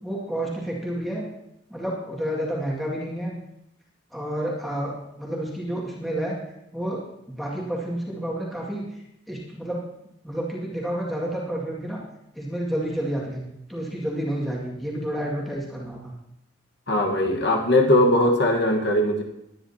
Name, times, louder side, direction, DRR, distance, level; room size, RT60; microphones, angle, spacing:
voice 1, 0.0-1.3 1.7-3.4 4.1-6.4 6.7-7.0 7.3-8.8 9.3-9.8 10.2-12.0 12.4-13.4 13.7-16.1, right 1 dB, ahead, -5 dB, 2.1 m, -30 dB
voice 2, 16.9-19.2, left 1 dB, 55° left, 2 dB, 1.4 m, -20 dB
21.5 x 9.9 x 2.8 m, 0.81 s
head